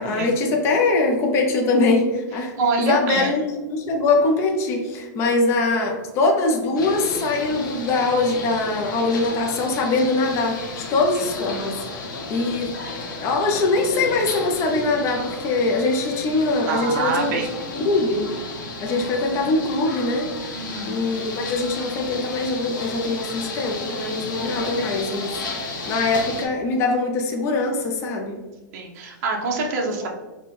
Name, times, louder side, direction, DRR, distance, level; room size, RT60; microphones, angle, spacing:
voice 1, 0.0-2.5 2.8-11.7 12.3-12.8 13.2-17.4 17.7-18.3 18.8-25.3 25.6-28.4, left 3 dB, 25° left, 2 dB, 0.5 m, -22 dB
voice 2, 2.6-3.3 16.7-17.5 20.5-21.0 28.7-30.1, right 4 dB, 50° right, 0 dB, 0.6 m, -25 dB
sound 1, 6.8-26.5, left 3 dB, 85° left, 0.8 m, -33 dB
4.2 x 2.2 x 3.1 m, 1.2 s
hypercardioid pair, 150°, 10 cm